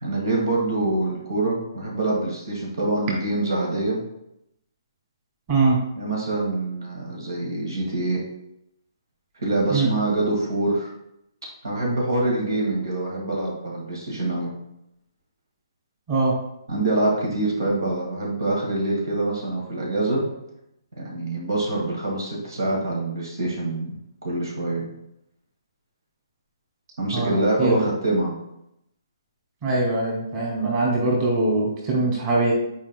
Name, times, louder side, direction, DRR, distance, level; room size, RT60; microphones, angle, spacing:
voice 1, 0.0-4.0 6.0-8.2 9.4-10.9 11.6-14.5 16.7-20.3 21.0-23.9 24.2-24.8 27.0-28.4, right 2 dB, 60° right, -2 dB, 1.9 m, -25 dB
voice 2, 27.1-27.8 29.6-32.5, right 2 dB, 25° right, -3 dB, 2.4 m, -22 dB
10.5 x 5.2 x 2.2 m, 0.81 s
figure-of-eight pair, 130°, 2 cm